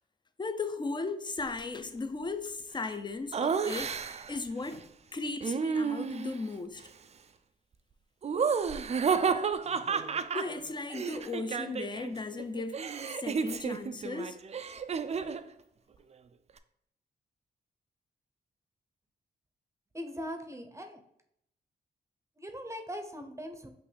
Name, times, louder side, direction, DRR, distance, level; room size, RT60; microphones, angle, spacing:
voice 1, 0.4-6.8 10.3-12.8 13.2-14.4, left 3 dB, 25° left, 0.5 m, -36 dB
Laughter, 3.3-4.4 5.4-6.4 8.2-12.1 12.4-15.5, right 6 dB, 35° right, 0.4 m, -31 dB
voice 2, 19.9-21.0 22.4-23.7, equal, 15° right, 0.7 m, -40 dB
5.9 x 2.5 x 3.3 m
supercardioid pair, 50°, 18 cm